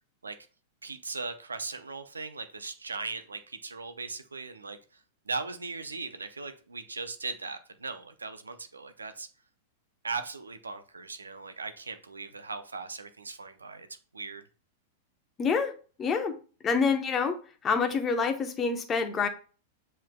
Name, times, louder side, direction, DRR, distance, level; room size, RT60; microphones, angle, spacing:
voice 1, 0.8-4.8 5.3-9.3 10.0-13.9 14.1-14.4, right 4 dB, 85° right, 0.5 m, -38 dB
voice 2, 15.4-15.7 16.0-16.4 16.6-17.4 17.6-19.3, left 5 dB, 25° left, 0.8 m, -27 dB
7.4 x 3.3 x 2.2 m
figure-of-eight pair, 100°, 0 cm